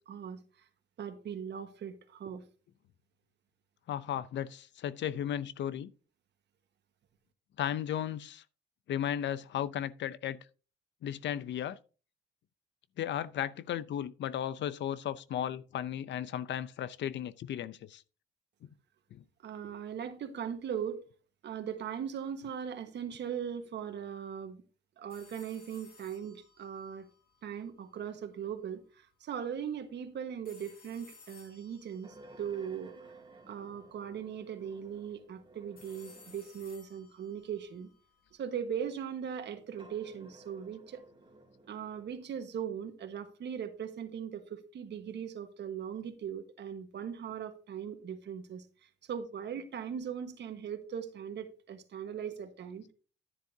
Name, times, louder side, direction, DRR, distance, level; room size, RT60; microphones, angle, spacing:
voice 1, 0.1-0.6 1.0-2.4 19.4-21.0 21.4-24.6 25.0-27.1 27.4-33.0 33.5-37.9 38.3-41.0 41.7-52.9, right 8 dB, 60° right, 1.4 m, -39 dB
voice 2, 3.9-5.9 7.6-8.4 8.9-10.4 11.0-11.8 13.0-18.0 19.1-19.2, left 10 dB, 65° left, 0.6 m, -35 dB
sound 1, 25.1-28.1 30.4-33.6 35.8-38.4, left 4 dB, 45° left, 4.4 m, -59 dB
sound 2, 32.0-36.7 37.4-37.5 39.6-42.2, right 2 dB, 25° right, 2.4 m, -56 dB
10.5 x 10.0 x 2.7 m
cardioid pair, 90°, 20 cm